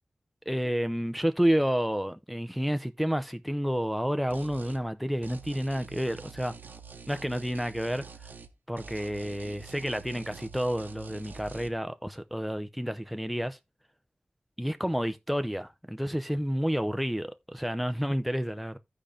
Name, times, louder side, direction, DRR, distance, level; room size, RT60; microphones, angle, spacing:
voice 1, 0.5-6.5 7.1-8.0 8.7-13.6 14.6-18.8, equal, ahead, 0.8 m, -30 dB
sound 1, 4.3-4.8 5.2-8.5 8.8-11.7, right 5 dB, 85° right, 0.9 m, -46 dB
15.0 x 5.1 x 2.7 m
wide cardioid pair, 85°, 3 cm